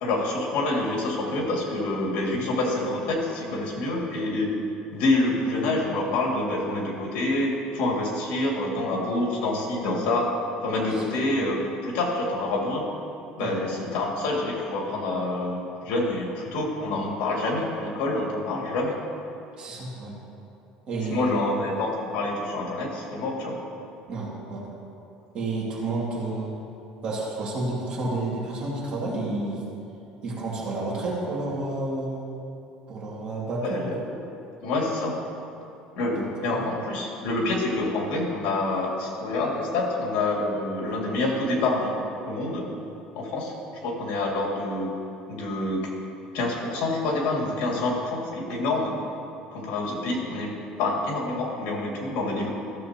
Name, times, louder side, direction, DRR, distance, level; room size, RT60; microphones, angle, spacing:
voice 1, 0.0-4.6 4.9-10.3 10.6-12.9 13.4-19.0 21.1-23.6 33.6-33.9 34.6-35.2 36.0-42.0 42.2-42.7 43.1-43.5 43.8-44.9 45.3-45.9 46.3-49.0 49.5-52.5, left 2 dB, 75° left, -2 dB, 2.3 m, -27 dB
voice 2, 19.6-20.2 20.9-21.5 24.1-24.6 25.3-26.5 27.0-29.6 30.2-32.2 32.9-33.8 36.1-36.6, right 2 dB, 40° right, -5 dB, 2.4 m, -30 dB
14.5 x 7.5 x 2.9 m, 2.8 s
cardioid pair, 145°, 2 cm